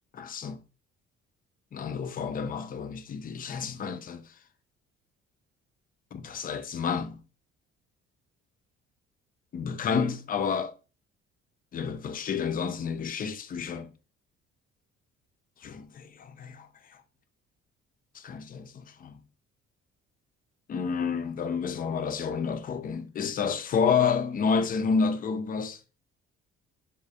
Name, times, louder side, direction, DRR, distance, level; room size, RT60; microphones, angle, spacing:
voice 1, 0.1-0.6 1.7-4.3 6.1-7.2 9.5-10.7 11.7-13.9 15.6-16.7 18.1-19.1 20.7-25.8, left 6 dB, 25° left, 0.4 m, -30 dB
3.1 x 2.0 x 2.4 m
figure-of-eight pair, 50°, 35 cm